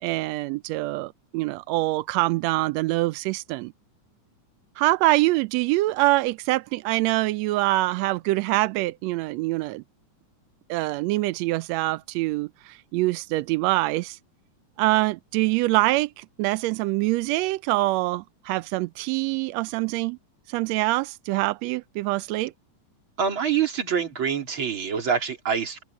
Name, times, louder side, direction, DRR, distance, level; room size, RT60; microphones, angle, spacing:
voice 1, 0.0-3.7 4.8-9.8 10.7-14.2 14.8-20.2 20.5-22.5, right 19 dB, 85° right, 1.5 m, -24 dB
voice 2, 23.2-25.8, right 7 dB, 40° right, 3.5 m, -25 dB
open air
omnidirectional pair, 3.6 m